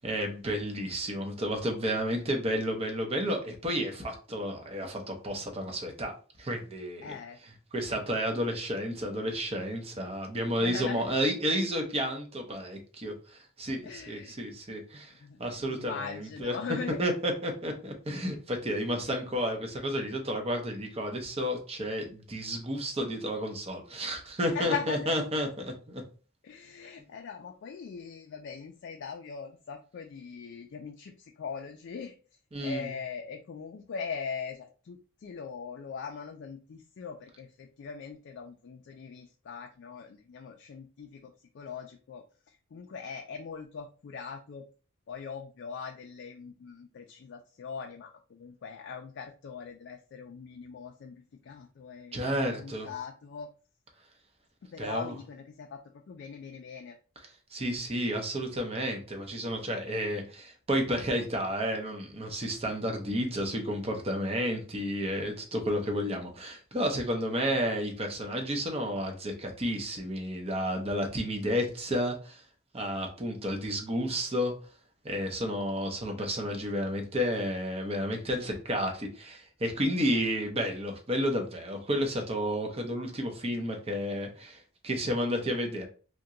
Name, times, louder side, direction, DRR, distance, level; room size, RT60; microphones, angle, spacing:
voice 1, 0.0-6.1 6.4-7.1 7.7-15.1 15.4-16.6 17.0-26.0 32.5-32.9 52.1-52.9 54.8-55.1 57.5-72.4 72.7-74.5 75.0-85.8, equal, 30° right, 3 dB, 0.7 m, -31 dB
voice 2, 7.0-7.4 10.6-11.2 13.8-14.4 15.2-17.0 24.5-25.1 26.4-32.1 32.6-44.7 45.1-53.5 54.6-57.0, left 6 dB, 55° left, 3 dB, 0.3 m, -41 dB
2.8 x 2.2 x 3.6 m, 0.37 s
head